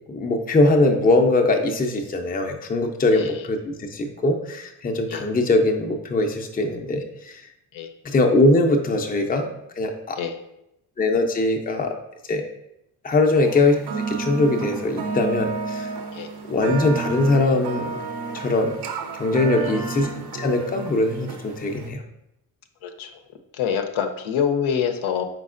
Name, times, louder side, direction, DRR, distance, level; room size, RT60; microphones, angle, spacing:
voice 1, 0.1-7.4 8.0-9.5 9.8-10.2 11.0-11.9 12.3-12.4 13.0-13.7 14.1-15.9 16.5-17.9 18.3-18.7 19.1-20.1 20.3-22.0, left 2 dB, 20° left, 3 dB, 0.5 m, -21 dB
voice 2, 3.1-3.5 5.1-5.2 7.7-7.9 10.2-10.3 16.1-16.3 19.6-20.0 22.8-23.1 23.5-25.2, left 7 dB, 70° left, 6 dB, 0.6 m, -26 dB
sound 1, 13.3-21.9, right 4 dB, 50° right, 0.6 m, -31 dB
4.6 x 4.1 x 2.5 m, 0.83 s
supercardioid pair, 65°, 50 cm